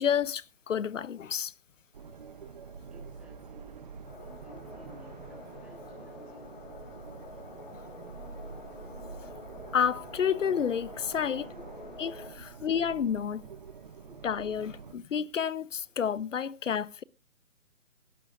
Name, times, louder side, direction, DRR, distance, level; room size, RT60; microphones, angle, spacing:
voice 1, 0.0-1.5 9.7-11.4 12.0-13.5 14.2-17.0, left 8 dB, 65° left, 0.7 m, -30 dB
sound 1, 1.9-14.9, right 6 dB, 35° right, 0.8 m, -47 dB
voice 2, 2.9-3.9 4.2-6.5 11.3-12.0 14.1-14.2, equal, ahead, 3.5 m, -55 dB
sound 2, 4.1-12.3, left 3 dB, 40° left, 3.7 m, -48 dB
20.0 x 12.0 x 2.5 m
hypercardioid pair, 155°, 40 cm